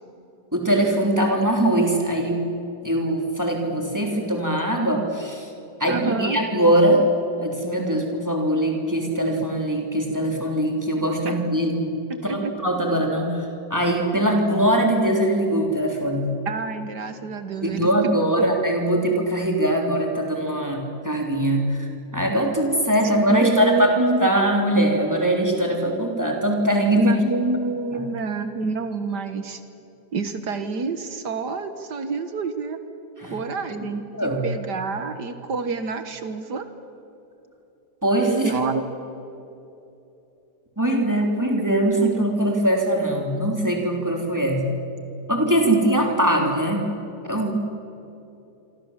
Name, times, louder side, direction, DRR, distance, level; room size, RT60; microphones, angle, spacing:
voice 1, 0.5-2.4 2.8-5.5 5.8-7.0 7.4-16.3 17.6-23.9 24.2-27.1 27.9-28.0 33.2-33.4 33.7-33.9 34.1-34.4 38.0-38.5 40.8-44.7 45.3-46.9 47.2-47.6, right 1 dB, 10° right, 1 dB, 3.4 m, -22 dB
voice 2, 5.9-6.4 11.3-11.4 12.1-12.5 16.5-18.1 18.4-18.5 23.3-24.3 27.0-29.6 30.1-32.8 33.3-36.7 38.4-38.8, right 3 dB, 70° right, 9 dB, 2.0 m, -27 dB
27.0 x 25.5 x 7.4 m, 2.8 s
omnidirectional pair, 1.9 m